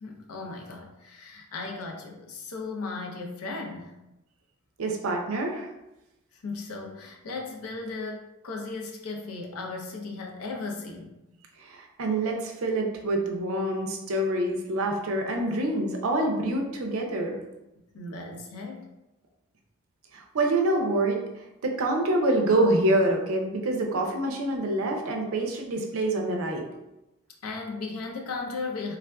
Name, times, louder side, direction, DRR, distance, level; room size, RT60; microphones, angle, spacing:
voice 1, 0.0-3.9 6.3-11.2 17.9-18.9 27.4-29.0, left 3 dB, 85° left, 2 dB, 0.5 m, -36 dB
voice 2, 4.8-5.7 11.6-17.4 20.1-21.2 21.6-26.7, right 1 dB, 75° right, 2 dB, 0.5 m, -26 dB
3.4 x 2.4 x 2.2 m, 0.95 s
head